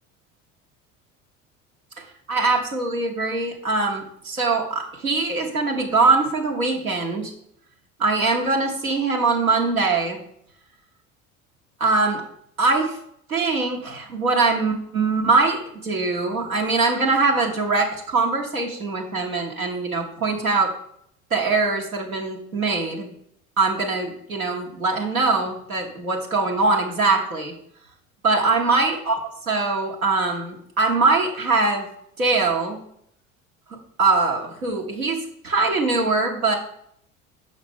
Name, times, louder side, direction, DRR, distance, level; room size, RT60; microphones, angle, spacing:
voice 1, 2.3-7.3 8.0-10.2 11.8-12.2 12.6-13.0 13.3-20.7 21.3-23.1 23.6-27.5 28.2-29.2 29.5-31.9 32.2-32.8 33.7-36.5, right 3 dB, 85° right, -1 dB, 1.2 m, -22 dB
6.4 x 5.8 x 3.5 m, 0.70 s
figure-of-eight pair, 70°, 41 cm